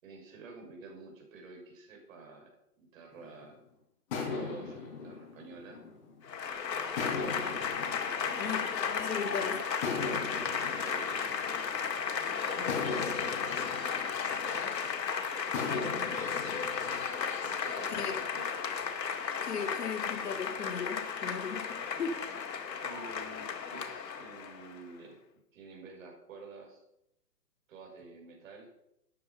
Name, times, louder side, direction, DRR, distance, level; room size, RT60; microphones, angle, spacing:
voice 1, 0.0-2.5 2.8-3.6 4.3-5.8 6.7-7.6 8.2-8.6 9.1-9.6 10.3-11.3 11.9-13.9 14.3-14.7 16.4-16.7 17.4-18.5 22.8-25.2 25.5-26.8 27.7-28.7, right 3 dB, 50° right, 1 dB, 6.3 m, -50 dB
sound 1, 3.2-3.5 4.1-6.4 7.0-9.2 9.8-12.0 12.7-14.9 15.5-17.1, left 4 dB, 35° left, 4.0 m, -39 dB
Applause / Crowd, 6.2-24.8, left 6 dB, 85° left, 2.1 m, -34 dB
voice 2, 8.4-9.5 9.9-10.0 18.0-18.1 19.4-22.1, left 6 dB, 70° left, 4 dB, 2.8 m, -37 dB
13.5 x 9.6 x 5.5 m, 0.81 s
hypercardioid pair, 160°, 49 cm